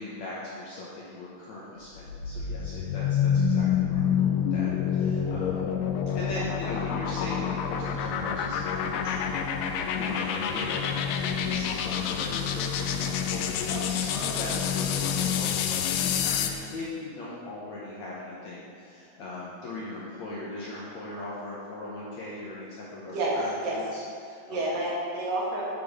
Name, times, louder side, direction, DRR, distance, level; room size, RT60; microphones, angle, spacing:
voice 1, 0.0-5.7 6.1-24.8, left 2 dB, 70° left, -7 dB, 1.8 m, -39 dB
sound 1, 1.9-16.6, left 8 dB, 85° left, 1.9 m, -28 dB
voice 2, 23.1-23.8 24.5-25.8, right 1 dB, 70° right, -4 dB, 2.8 m, -29 dB
8.4 x 4.5 x 5.1 m, 2.3 s
omnidirectional pair, 4.2 m